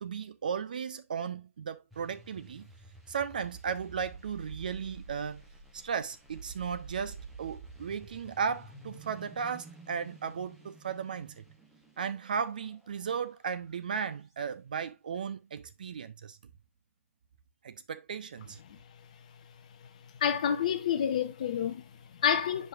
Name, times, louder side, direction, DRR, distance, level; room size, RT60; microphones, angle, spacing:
voice 1, 0.0-2.7 3.1-5.4 5.7-11.4 12.0-16.4 17.6-18.6, right 6 dB, 35° right, 0.4 m, -35 dB
sound 1, 1.9-14.3, right 4 dB, ahead, 0.9 m, -50 dB
voice 2, 20.2-22.7, left 8 dB, 30° left, 0.7 m, -29 dB
8.2 x 5.1 x 2.4 m
figure-of-eight pair, 145°, 8 cm